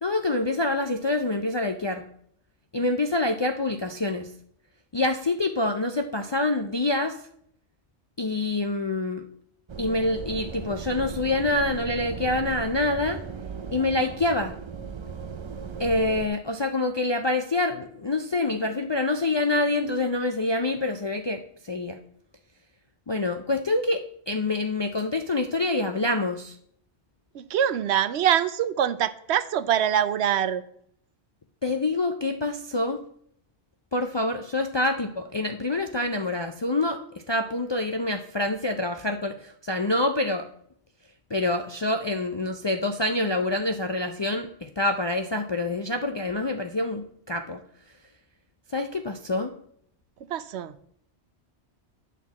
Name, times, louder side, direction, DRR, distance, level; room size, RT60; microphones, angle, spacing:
voice 1, 0.0-2.1 2.7-4.3 4.9-7.1 8.2-9.2 9.8-13.2 13.7-14.6 15.8-22.0 23.1-26.6 31.6-33.0 33.9-37.0 37.3-40.5 41.3-47.6 48.7-49.5, left 2 dB, 45° left, 5 dB, 0.3 m, -26 dB
sound 1, 9.7-16.3, right 5 dB, 45° right, 0.3 m, -37 dB
voice 2, 27.3-30.6 50.3-50.8, right 10 dB, 75° right, 13 dB, 0.8 m, -24 dB
9.3 x 4.2 x 7.0 m, 0.67 s
omnidirectional pair, 1.1 m